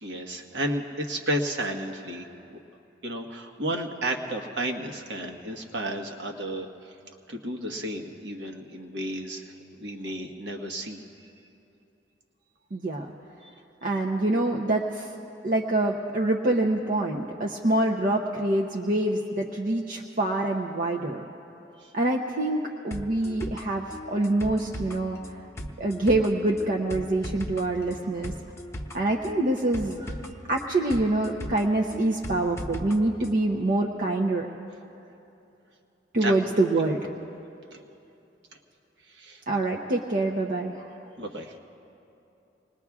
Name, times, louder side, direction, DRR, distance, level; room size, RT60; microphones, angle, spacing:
voice 1, 0.0-2.2 3.0-6.9 7.3-11.3 21.8-21.9 36.2-36.3 37.7-37.8 39.1-39.4 41.2-41.6, right 1 dB, 65° right, 2 dB, 1.3 m, -32 dB
voice 2, 12.7-13.1 13.8-15.1 15.4-21.2 21.9-25.2 25.8-28.3 28.9-30.2 30.5-34.5 36.1-37.1 39.5-41.1, right 2 dB, 50° right, 1 dB, 0.7 m, -25 dB
sound 1, 22.9-33.0 33.2-33.3, equal, 15° left, 0.7 m, -38 dB
26.5 x 20.0 x 2.4 m, 2.9 s
head